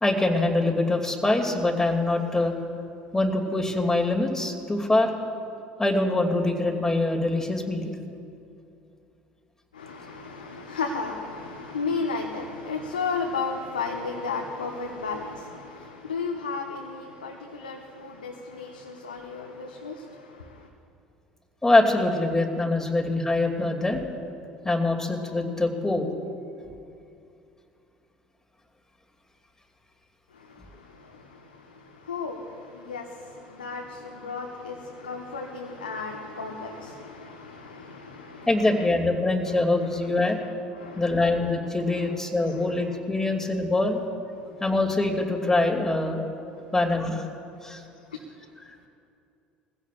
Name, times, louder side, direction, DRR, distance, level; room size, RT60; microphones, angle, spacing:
voice 1, 0.0-2.5 3.1-5.1 5.8-7.9 21.6-24.0 24.6-26.1 38.5-40.4 41.0-44.0 44.6-46.3 46.7-47.3 47.6-47.8, left 2 dB, 10° left, 1 dB, 2.6 m, -24 dB
voice 2, 9.7-20.7 30.3-38.8 39.8-39.9 40.2-40.3 40.7-41.3 41.9-42.1 42.5-42.7 43.2-43.3 44.4-44.5 48.1-48.2, left 4 dB, 90° left, 1 dB, 0.9 m, -34 dB
22.0 x 15.5 x 2.5 m, 2.5 s
hypercardioid pair, 65°, 5 cm